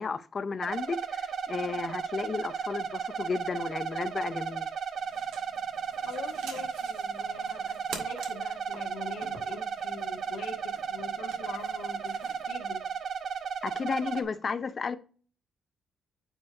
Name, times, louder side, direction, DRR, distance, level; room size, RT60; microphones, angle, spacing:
voice 1, 0.0-4.7 13.6-15.0, left 5 dB, 40° left, 0.7 m, -33 dB
sound 1, 0.6-14.2, right 6 dB, 65° right, 0.8 m, -34 dB
sound 2, 5.0-12.5, right 5 dB, 85° right, 1.7 m, -48 dB
voice 2, 6.0-13.0, left 4 dB, 85° left, 1.5 m, -44 dB
8.9 x 3.1 x 3.7 m
cardioid pair, 80°, 0 cm